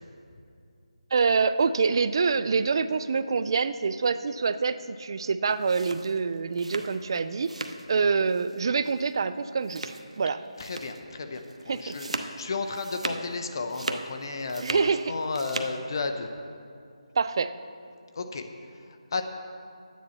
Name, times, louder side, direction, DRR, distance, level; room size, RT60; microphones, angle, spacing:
voice 1, 1.1-7.5 7.9-10.4 11.7-12.0 14.6-15.1 17.2-17.5, right 5 dB, 45° right, 13 dB, 0.4 m, -26 dB
sound 1, 5.5-7.9 8.2-8.6 8.8-9.0 9.6-10.2 10.6-11.0 11.3-13.3 13.6-14.9 15.2-15.8, right 2 dB, 90° right, 0.8 m, -37 dB
voice 2, 10.6-16.3 18.1-19.2, left 3 dB, 45° left, 6 dB, 0.7 m, -33 dB
10.5 x 9.2 x 4.2 m, 2.4 s
figure-of-eight pair, 165°, 3 cm